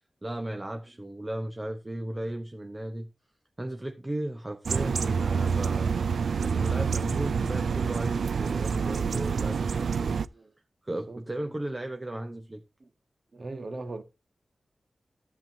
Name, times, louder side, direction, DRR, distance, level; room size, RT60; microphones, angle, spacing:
voice 1, 0.2-3.1 3.6-5.9 6.4-10.2 10.8-12.6, right 1 dB, 20° right, 0.8 m, -35 dB
sound 1, 4.7-10.3, right 6 dB, 90° right, 0.4 m, -27 dB
voice 2, 11.1-11.6 12.8-12.9 13.3-14.0, right 2 dB, 45° right, 1.3 m, -41 dB
13.0 x 7.5 x 2.7 m
wide cardioid pair, 110°, 0 cm